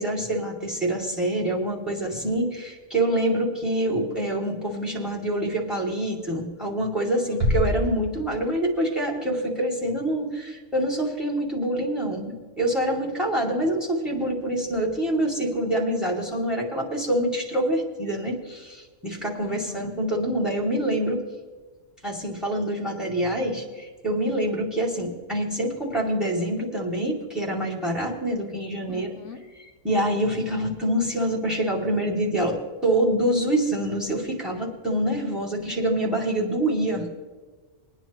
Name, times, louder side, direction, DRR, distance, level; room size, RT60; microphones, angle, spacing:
voice 1, 0.0-21.2 22.0-29.1 29.8-37.2, right 1 dB, ahead, -2 dB, 2.5 m, -26 dB
voice 2, 7.0-7.4 19.4-19.9 28.9-29.4, left 6 dB, 70° left, 2 dB, 1.3 m, -40 dB
sound 1, 7.4-9.0, left 1 dB, 50° right, 1.9 m, -27 dB
22.0 x 9.7 x 3.1 m, 1.4 s
omnidirectional pair, 1.3 m